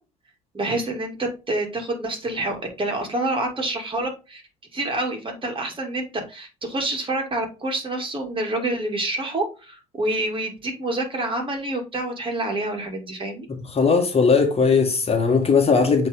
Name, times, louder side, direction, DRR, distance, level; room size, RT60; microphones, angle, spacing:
voice 1, 0.5-4.4 4.7-13.5, right 2 dB, 30° right, 2.5 m, -27 dB
voice 2, 13.5-16.1, left 5 dB, 35° left, 1.6 m, -19 dB
8.0 x 3.4 x 3.7 m
figure-of-eight pair, 55°, 19 cm